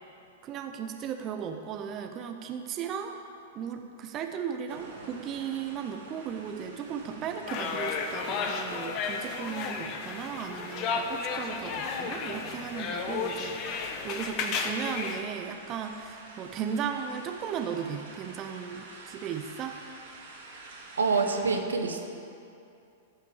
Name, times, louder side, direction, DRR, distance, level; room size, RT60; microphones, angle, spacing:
voice 1, 0.4-3.2 3.5-19.8, right 7 dB, 35° right, 5 dB, 0.8 m, -36 dB
sound 1, 4.7-21.4, right 3 dB, 65° right, 2.5 m, -49 dB
sound 2, 7.5-15.2, left 5 dB, 40° left, 1.1 m, -33 dB
voice 2, 21.0-22.0, right 4 dB, 80° right, 4 dB, 1.1 m, -26 dB
13.5 x 5.7 x 7.2 m, 2.6 s
hypercardioid pair, 105°, 0 cm